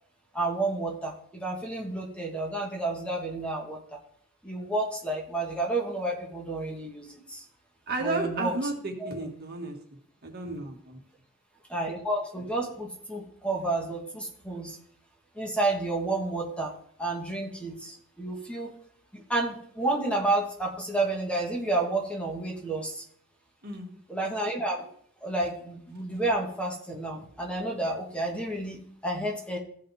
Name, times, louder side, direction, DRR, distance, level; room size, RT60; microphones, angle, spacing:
voice 1, 0.3-3.8 4.4-7.4 8.0-8.7 9.0-9.3 11.7-14.8 15.3-18.7 19.1-23.0 24.1-24.9 25.2-29.6, right 2 dB, 5° left, 0 dB, 1.3 m, -30 dB
voice 2, 7.9-9.7 10.2-11.0 23.6-23.9, right 2 dB, 50° right, 1 dB, 1.7 m, -32 dB
16.0 x 5.6 x 3.4 m, 0.62 s
head